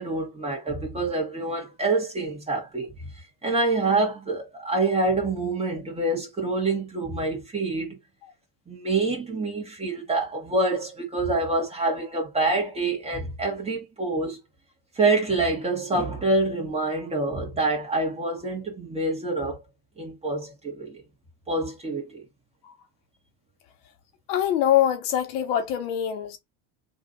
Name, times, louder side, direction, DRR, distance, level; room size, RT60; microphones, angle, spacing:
voice 1, 0.0-8.0 8.7-14.4 14.9-19.6 20.0-21.0 21.5-22.2, right 2 dB, 15° right, 1.6 m, -26 dB
voice 2, 24.3-26.4, left 10 dB, 65° left, 1.1 m, -24 dB
3.5 x 2.6 x 3.6 m
supercardioid pair, 145°, 47 cm